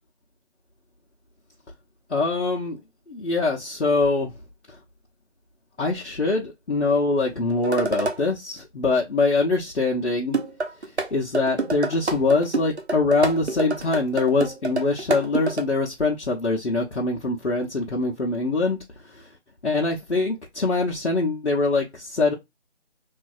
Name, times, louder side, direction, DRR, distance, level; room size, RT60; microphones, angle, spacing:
voice 1, 2.1-2.8 3.1-4.3 5.8-10.4 11.1-18.8 19.1-19.2 19.6-22.3, left 3 dB, 85° left, 0.9 m, -23 dB
sound 1, 7.6-8.2 10.3-11.1 11.3-15.6, right 3 dB, 75° right, 0.8 m, -27 dB
3.1 x 2.7 x 2.4 m
figure-of-eight pair, 160°, 34 cm